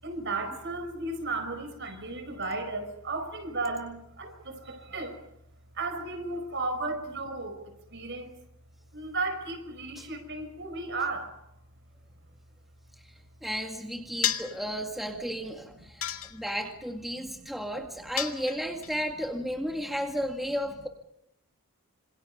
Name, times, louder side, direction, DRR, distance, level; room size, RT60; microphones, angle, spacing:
voice 1, 0.0-5.2 5.7-8.4 8.9-11.3 14.1-14.4 15.7-15.8 17.1-18.1, right 3 dB, 55° right, 8 dB, 5.2 m, -35 dB
voice 2, 13.4-16.0 16.3-20.9, equal, ahead, 2 dB, 2.0 m, -33 dB
sound 1, 14.2-14.6 16.0-16.7 18.2-18.9, left 10 dB, 65° left, 2.1 m, -31 dB
27.0 x 27.0 x 5.5 m, 0.78 s
head